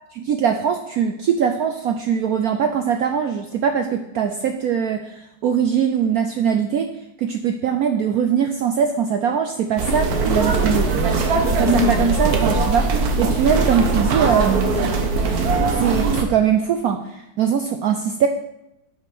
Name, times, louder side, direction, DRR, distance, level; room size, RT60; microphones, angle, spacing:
voice 1, 0.2-6.9 7.2-10.8 11.4-14.7 15.8-18.3, right 7 dB, 75° right, 6 dB, 0.8 m, -21 dB
sound 1, 9.8-16.2, right 3 dB, 55° right, 1.4 m, -20 dB
8.1 x 5.6 x 5.9 m, 0.86 s
omnidirectional pair, 2.2 m